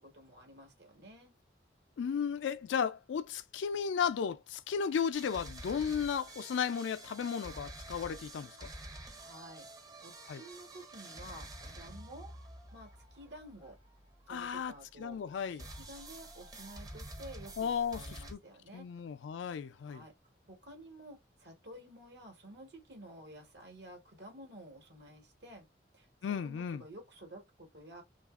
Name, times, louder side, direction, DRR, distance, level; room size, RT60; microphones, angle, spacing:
voice 1, 0.0-1.3 9.2-9.7 10.0-12.3 12.7-13.8 14.3-18.8 19.9-20.1 20.5-25.6 25.9-28.0, right 1 dB, 70° right, 1.2 m, -52 dB
voice 2, 2.0-8.7 10.3-10.4 14.3-15.6 17.6-18.4 18.7-20.0 26.2-26.8, left 7 dB, 85° left, 0.3 m, -35 dB
sound 1, 5.1-15.1 15.6-18.3, right 1 dB, 20° right, 0.5 m, -49 dB
2.8 x 2.4 x 2.3 m
head